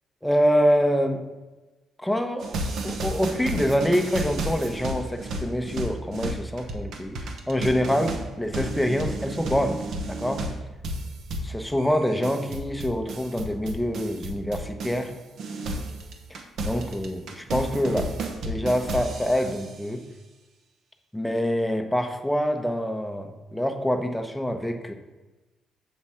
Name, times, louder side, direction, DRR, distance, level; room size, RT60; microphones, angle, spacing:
voice 1, 0.2-1.2 2.0-2.6 2.8-9.8 10.1-10.4 11.5-15.1 16.3-18.2 18.4-20.0 21.1-24.9, equal, 5° left, 5 dB, 0.7 m, -25 dB
sound 1, 2.4-15.1 15.4-19.8, right 1 dB, 70° right, 0.9 m, -33 dB
7.2 x 3.1 x 5.6 m, 1.1 s
cardioid pair, 90°, 0 cm